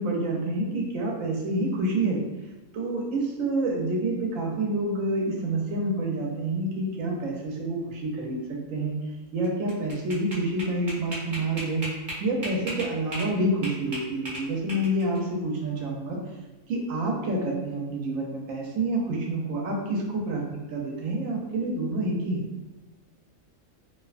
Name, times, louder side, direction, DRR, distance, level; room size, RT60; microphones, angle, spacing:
voice 1, 0.0-2.2 2.7-9.0 9.3-11.9 12.2-16.2 16.7-22.5, right 2 dB, 80° right, -1 dB, 1.0 m, -28 dB
sound 1, 9.4-13.3 13.6-15.2, right 1 dB, 40° right, 1.0 m, -35 dB
2.7 x 2.1 x 2.4 m, 1.1 s
omnidirectional pair, 1.3 m